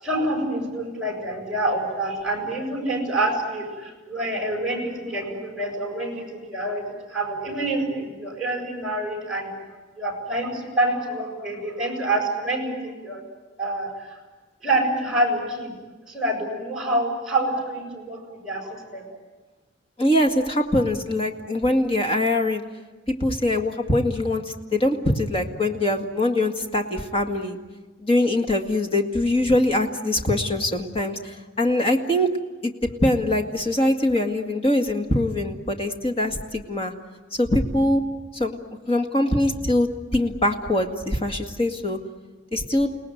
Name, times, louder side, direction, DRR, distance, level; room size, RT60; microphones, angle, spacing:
voice 1, 0.0-9.5 10.0-13.2 13.6-14.2 14.6-15.7 16.1-19.0, right 1 dB, 5° right, -1 dB, 7.5 m, -27 dB
voice 2, 20.0-22.6 23.1-27.6 28.0-32.3 32.6-36.9 37.3-38.0 38.3-38.6 38.9-42.0 42.5-42.9, left 1 dB, 30° left, 5 dB, 2.0 m, -23 dB
29.5 x 19.0 x 9.3 m, 1.2 s
head